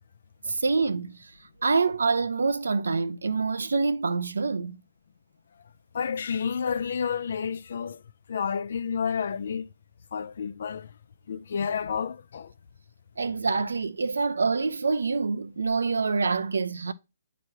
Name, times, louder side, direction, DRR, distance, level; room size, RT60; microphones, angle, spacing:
voice 1, 0.4-1.3 1.6-4.8 13.2-16.9, right 4 dB, 75° right, 0.6 m, -26 dB
voice 2, 5.9-8.0 8.3-9.7 10.1-10.9 11.3-12.5 13.3-13.4, left 6 dB, 60° left, 0.5 m, -30 dB
8.5 x 3.0 x 4.5 m
figure-of-eight pair, 130°, 0 cm